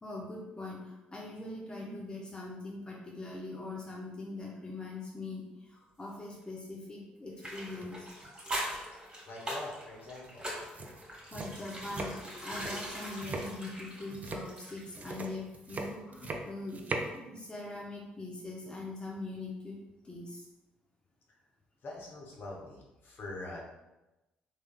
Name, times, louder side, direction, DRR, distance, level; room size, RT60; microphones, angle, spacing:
voice 1, 0.0-8.1 11.3-20.5, left 2 dB, 20° left, -3 dB, 0.6 m, -42 dB
sound 1, 7.4-15.0 15.3-15.4, equal, 15° right, 1.4 m, -42 dB
sound 2, 7.7-7.9 8.2-8.5 10.2-10.3 10.6-17.2, right 2 dB, 35° right, 0.4 m, -40 dB
voice 2, 9.2-10.5 21.3-21.4 21.8-23.6, left 2 dB, 50° left, -2 dB, 0.9 m, -44 dB
3.2 x 3.2 x 2.2 m, 1.0 s
figure-of-eight pair, 45°, 5 cm